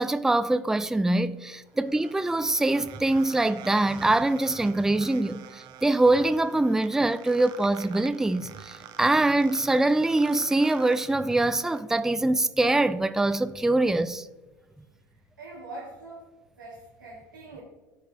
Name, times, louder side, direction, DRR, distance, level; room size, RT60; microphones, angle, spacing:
voice 1, 0.0-14.3, right 2 dB, 5° right, 0.3 m, -24 dB
sound 1, 1.3-11.8, right 9 dB, 50° right, 0.7 m, -47 dB
voice 2, 15.1-16.3 16.6-17.6, right 2 dB, 85° right, 1.3 m, -43 dB
13.0 x 4.7 x 2.7 m
figure-of-eight pair, 65°, 10 cm